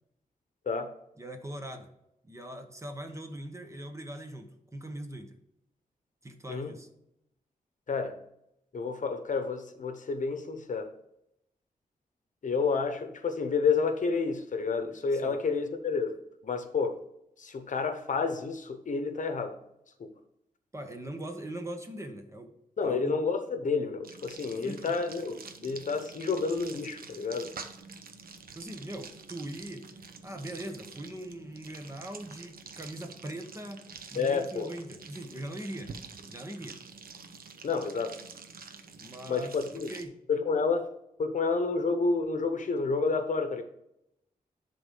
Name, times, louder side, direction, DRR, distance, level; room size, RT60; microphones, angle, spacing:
voice 1, 1.2-1.9 2.2-5.4 6.2-6.9 15.1-15.4 20.7-22.5 22.8-23.2 24.5-24.9 28.5-29.9 30.2-33.8 34.1-35.9 36.3-36.8 39.0-40.2, right 1 dB, 20° right, 1.0 m, -41 dB
voice 2, 7.9-8.2 8.7-10.9 12.4-16.2 16.4-17.0 17.4-19.6 20.0-20.1 22.8-27.5 34.1-34.8 37.6-38.1 39.3-39.9 40.3-40.9 41.2-43.6, left 4 dB, 60° left, 0.9 m, -30 dB
sound 1, 24.0-40.0, right 5 dB, 80° right, 0.9 m, -47 dB
11.0 x 3.9 x 5.4 m
wide cardioid pair, 155°, 15 cm